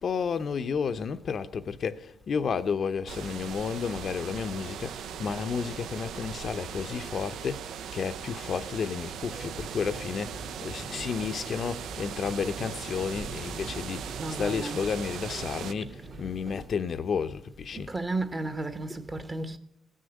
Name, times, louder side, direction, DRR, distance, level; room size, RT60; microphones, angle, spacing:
voice 1, 0.0-17.9, left 6 dB, 50° left, 0.6 m, -32 dB
sound 1, 3.1-15.7, right 8 dB, 75° right, 0.6 m, -39 dB
sound 2, 9.3-16.7, right 3 dB, 55° right, 2.4 m, -44 dB
voice 2, 14.2-14.8 17.7-19.6, right 2 dB, 25° right, 1.1 m, -33 dB
16.5 x 6.4 x 8.2 m
cardioid pair, 90°, 0 cm